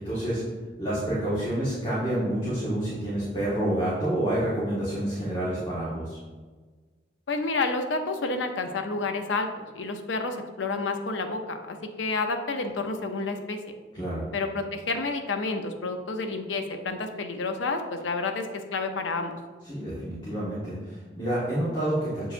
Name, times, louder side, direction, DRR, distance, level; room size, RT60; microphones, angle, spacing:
voice 1, 0.0-0.4 0.8-6.2 13.9-14.2 19.6-22.3, right 1 dB, 25° left, -10 dB, 1.5 m, -28 dB
voice 2, 7.3-13.6 14.3-19.4, left 3 dB, 90° left, 6 dB, 0.6 m, -30 dB
7.7 x 4.7 x 2.6 m, 1.4 s
head